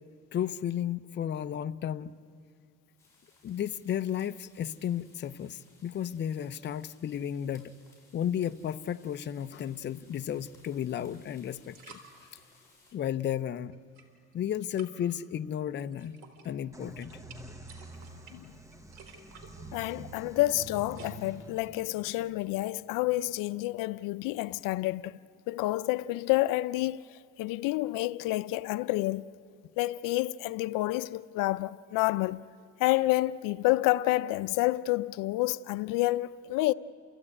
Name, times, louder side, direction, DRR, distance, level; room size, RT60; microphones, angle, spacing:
voice 1, 0.3-2.2 3.4-7.8 8.1-12.0 12.9-13.8 14.3-17.2, left 10 dB, 35° left, 0.6 m, -33 dB
sound 1, 3.0-12.9, left 2 dB, 10° left, 7.7 m, -63 dB
sound 2, 10.6-10.7 11.6-12.1 13.7-14.3 14.8-15.1 15.8-16.5 16.8-21.1, right 5 dB, 70° right, 4.4 m, -54 dB
sound 3, 16.7-24.3, right 2 dB, 10° right, 1.0 m, -48 dB
voice 2, 19.7-25.2 25.5-29.2 29.8-32.4 32.8-36.7, left 18 dB, 80° left, 0.6 m, -29 dB
29.0 x 15.5 x 9.8 m
cardioid pair, 125°, 32 cm